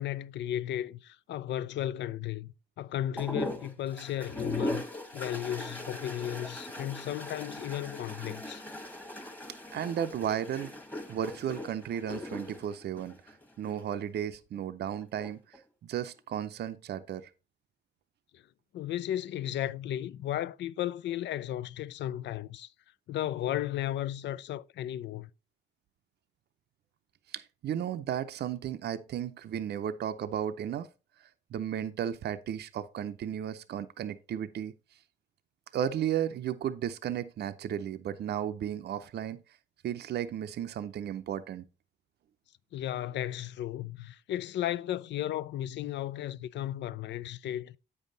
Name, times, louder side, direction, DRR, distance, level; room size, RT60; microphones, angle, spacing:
voice 1, 0.0-4.8 5.1-8.6 18.3-18.4 18.7-22.7 23.1-25.3 42.7-47.8, left 12 dB, 65° left, 0.4 m, -34 dB
sound 1, 3.2-13.8 15.0-15.6, left 1 dB, 10° left, 1.3 m, -39 dB
voice 2, 9.7-10.7 11.1-17.3 27.3-30.9 31.2-34.7 35.7-39.4 39.8-41.7, right 9 dB, 55° right, 0.6 m, -34 dB
8.2 x 5.5 x 3.9 m
cardioid pair, 90°, 20 cm